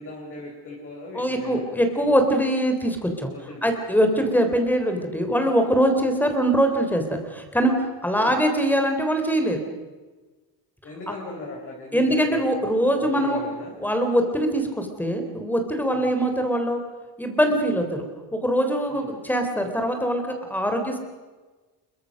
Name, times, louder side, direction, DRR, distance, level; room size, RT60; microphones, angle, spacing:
voice 1, 0.0-2.2 3.3-3.9 4.1-4.3 5.9-6.1 8.1-8.4 10.8-13.7 15.9-16.1 17.7-17.8 18.9-19.2, left 2 dB, 30° left, -1 dB, 4.5 m, -39 dB
voice 2, 1.1-3.3 3.6-7.7 8.0-9.6 11.9-13.4 13.8-16.8 17.2-18.0 18.3-20.2 20.5-21.0, equal, 5° left, 5 dB, 3.3 m, -22 dB
28.0 x 23.0 x 6.5 m, 1.3 s
cardioid pair, 170°, 40 cm